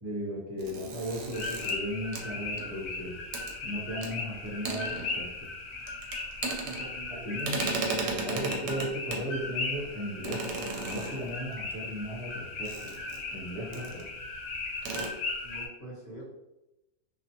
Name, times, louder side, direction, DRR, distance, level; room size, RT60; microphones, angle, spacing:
voice 1, 0.0-3.2 3.6-5.5 7.2-7.7 8.0-10.4 10.8-12.9 13.3-14.0, equal, 30° right, -10 dB, 1.1 m, -36 dB
sound 1, 0.6-2.9 3.3-3.5 4.0-4.1 4.5-5.5 5.8-7.1 7.4-9.3 10.2-11.5 12.6-13.4 13.7-14.1 14.3-14.4 14.8-15.1, right 3 dB, 75° right, 0.9 m, -35 dB
sound 2, 1.3-15.7, left 3 dB, 80° left, 1.0 m, -38 dB
voice 2, 6.2-7.3 13.6-14.0 15.4-16.2, right 2 dB, 35° left, -7 dB, 1.1 m, -46 dB
2.5 x 2.4 x 2.8 m, 0.93 s
omnidirectional pair, 1.4 m